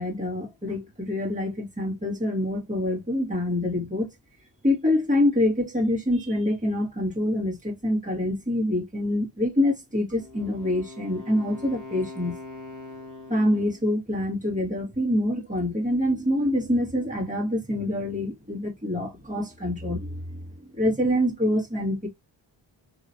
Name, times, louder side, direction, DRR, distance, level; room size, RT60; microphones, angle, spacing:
voice 1, 0.0-4.1 4.6-12.4 13.3-20.4 20.7-22.1, left 1 dB, 15° right, 1.8 m, -26 dB
Wind instrument woodwind instrument, 10.1-13.9, left 2 dB, 40° right, 1.2 m, -42 dB
3.0 x 2.9 x 2.7 m
wide cardioid pair, 85°, 47 cm